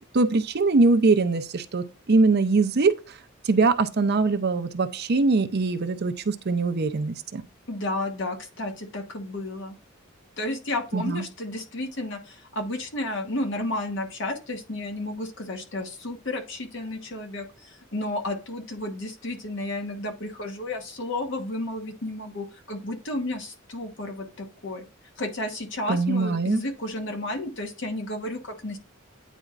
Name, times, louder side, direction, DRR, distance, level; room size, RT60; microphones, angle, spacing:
voice 1, 0.1-2.9 3.5-7.4 10.9-11.2 25.9-26.6, right 3 dB, 55° right, 0.6 m, -22 dB
voice 2, 7.7-9.7 10.4-24.9 25.2-28.8, left 1 dB, 65° left, 1.1 m, -32 dB
9.1 x 4.2 x 2.5 m
head